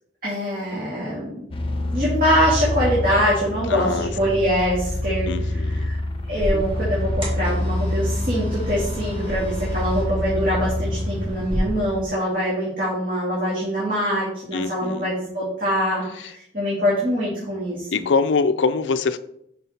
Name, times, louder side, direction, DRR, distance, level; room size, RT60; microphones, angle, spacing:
voice 1, 0.2-1.4 1.9-6.0 6.3-17.9, equal, 50° right, 2.3 m, -24 dB
sound 1, 1.5-12.1, left 1 dB, 30° left, 0.7 m, -27 dB
voice 2, 3.7-4.1 5.3-5.9 14.5-15.1 16.2-16.3 17.9-19.2, left 4 dB, 75° left, 0.4 m, -23 dB
sound 2, 6.3-11.6, equal, 30° right, 1.9 m, -32 dB
5.8 x 5.6 x 4.3 m
head